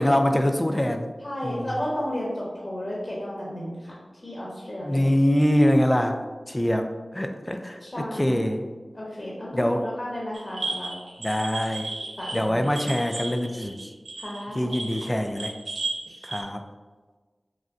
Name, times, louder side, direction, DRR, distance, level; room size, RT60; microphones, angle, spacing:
voice 1, 0.0-1.1 1.4-1.7 4.8-6.2 6.5-7.8 8.1-8.7 9.5-9.9 11.2-11.9 12.3-13.9 14.5-15.5 16.2-16.6, equal, 20° left, 6 dB, 0.4 m, -24 dB
voice 2, 1.2-3.9 4.2-5.0 7.8-8.4 8.9-10.9 12.2-12.6 14.2-14.6, equal, 40° left, -5 dB, 1.0 m, -33 dB
sound 1, 10.3-16.4, right 2 dB, 85° right, 0.6 m, -34 dB
6.1 x 2.2 x 2.5 m, 1.4 s
wide cardioid pair, 50°, 0 cm